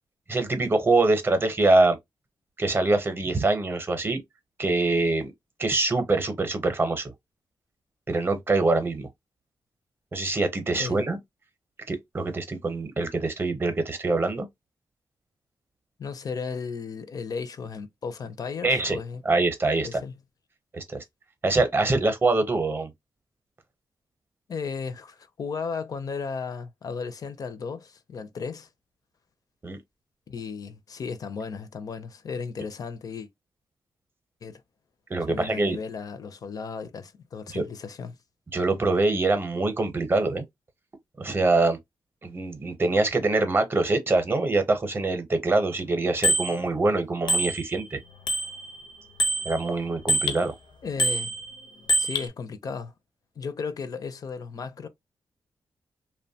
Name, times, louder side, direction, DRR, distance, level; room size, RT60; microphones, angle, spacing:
voice 1, 0.3-2.0 2.6-4.2 4.6-5.3 5.6-7.1 8.1-9.1 10.1-11.2 11.9-14.5 18.6-19.0 19.2-20.0 20.7-21.0 21.4-22.9 29.6-29.8 35.1-35.8 37.5-37.6 38.5-40.4 41.2-41.8 42.2-48.0 49.4-50.5, right 2 dB, 30° right, 0.6 m, -24 dB
voice 2, 16.0-19.2 19.8-20.1 24.5-28.7 30.3-33.3 34.4-34.6 35.3-38.2 50.8-51.3 52.0-52.9 53.4-54.9, left 5 dB, 50° left, 0.4 m, -35 dB
Bicycle bell, 46.2-46.5 47.3-47.9 48.3-50.4 51.0-52.3, right 1 dB, 85° left, 0.6 m, -26 dB
2.8 x 2.2 x 2.7 m
wide cardioid pair, 120°, 8 cm